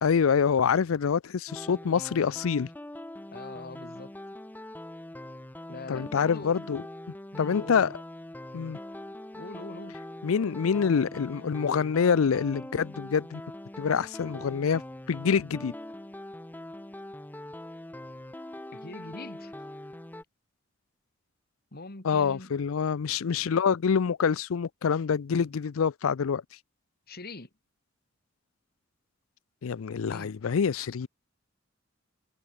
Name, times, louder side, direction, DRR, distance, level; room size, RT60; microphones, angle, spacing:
voice 1, 0.0-2.7 5.9-6.8 7.4-8.0 8.5-8.8 10.2-13.4 13.8-14.8 15.1-15.7 22.0-26.4 29.6-31.1, left 6 dB, 85° left, 0.5 m, -26 dB
sound 1, 1.5-20.2, left 1 dB, 10° left, 0.7 m, -43 dB
voice 2, 3.3-4.1 5.7-6.6 7.3-7.8 9.3-10.0 18.7-19.7 21.7-22.5 25.3-25.5 27.1-27.5 30.1-30.3, left 2 dB, 50° left, 2.2 m, -43 dB
head